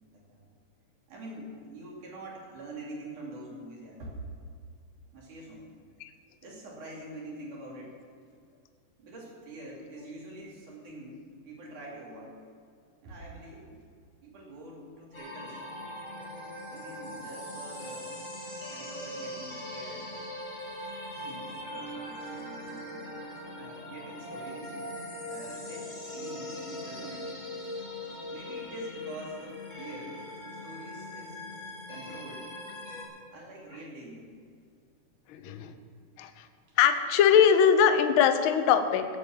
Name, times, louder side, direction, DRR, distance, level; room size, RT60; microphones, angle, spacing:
voice 1, 0.1-0.4 1.1-4.2 5.1-5.6 6.4-8.0 9.0-12.3 13.0-13.8 14.2-15.6 16.7-18.3 18.7-20.1 21.2-23.1 23.6-24.7 25.2-27.3 28.3-31.4 31.9-32.5 33.3-34.3, right 1 dB, 75° right, -3 dB, 4.5 m, -45 dB
sound 1, 15.1-33.0, left 1 dB, 25° left, 2.4 m, -40 dB
voice 2, 35.3-35.7 36.2-36.3 36.8-39.1, left 8 dB, 85° left, 8 dB, 1.1 m, -21 dB
16.0 x 8.4 x 7.4 m, 2.2 s
omnidirectional pair, 3.6 m